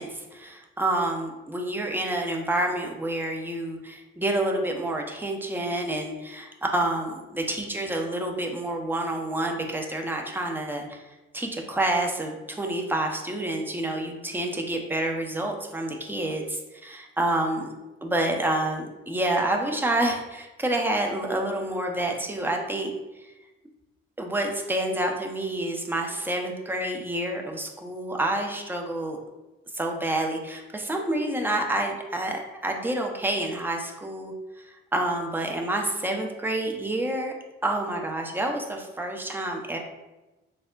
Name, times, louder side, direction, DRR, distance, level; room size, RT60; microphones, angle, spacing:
voice 1, 0.0-11.0 11.3-17.7 18.0-22.9 23.2-23.3 24.2-29.2 29.7-34.3 34.9-37.3 37.6-39.8, right 1 dB, 5° right, 2 dB, 0.4 m, -28 dB
3.4 x 2.0 x 2.3 m, 1.1 s
figure-of-eight pair, 40°, 30 cm